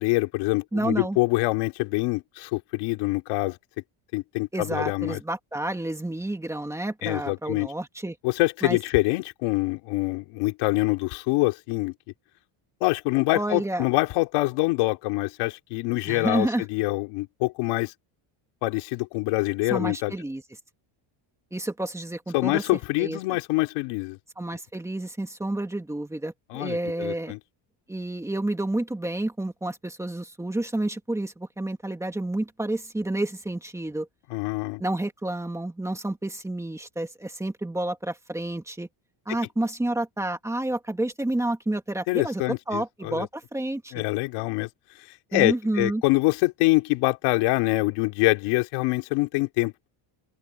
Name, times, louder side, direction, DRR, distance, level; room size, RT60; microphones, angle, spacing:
voice 1, 0.0-3.6 4.1-5.2 7.0-7.7 8.2-11.9 12.8-17.9 18.6-20.1 22.3-24.2 26.5-27.4 34.3-34.8 42.1-43.3 43.9-44.7 45.3-49.9, left 22 dB, 85° left, 3.2 m, -25 dB
voice 2, 0.7-1.2 4.5-8.2 8.6-8.8 13.3-13.9 16.1-16.6 19.7-20.4 21.5-22.6 23.0-23.2 24.4-27.3 27.9-34.1 34.8-38.9 39.3-44.0 45.3-46.0, right 1 dB, 5° right, 2.2 m, -30 dB
open air
cardioid pair, 160°, 49 cm